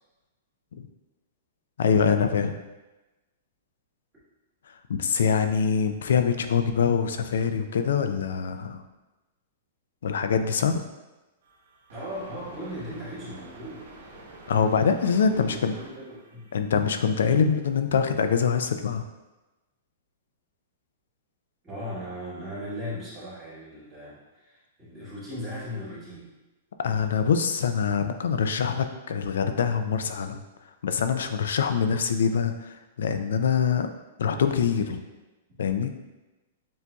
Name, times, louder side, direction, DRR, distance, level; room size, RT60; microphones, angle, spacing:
voice 1, 1.8-2.5 4.9-8.8 10.0-10.8 14.5-15.7 16.5-19.0 26.8-30.4 30.8-33.9 34.2-35.0 35.6-35.9, left 6 dB, 80° left, 8 dB, 0.4 m, -24 dB
sound 1, 11.4-17.0, right 2 dB, 55° right, 0.9 m, -48 dB
voice 2, 11.9-13.9 15.2-16.5 21.6-26.3 34.8-35.0, equal, 10° right, -11 dB, 1.3 m, -38 dB
7.1 x 2.7 x 2.3 m, 1.1 s
supercardioid pair, 180°, 0 cm